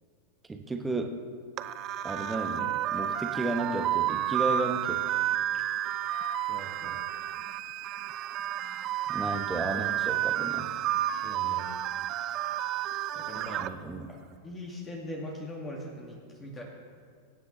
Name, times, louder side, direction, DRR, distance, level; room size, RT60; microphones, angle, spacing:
voice 1, 0.5-1.2 2.0-5.0 9.1-10.7 13.6-14.1, right 3 dB, 10° right, 5 dB, 1.2 m, -33 dB
sound 1, 1.6-13.7, right 11 dB, 35° right, 0.5 m, -31 dB
voice 2, 6.4-7.0 11.1-11.7 13.1-13.6 14.1-14.2 14.4-16.6, left 1 dB, 20° left, -2 dB, 2.0 m, -41 dB
23.0 x 9.7 x 3.2 m, 2.2 s
figure-of-eight pair, 90°, 0 cm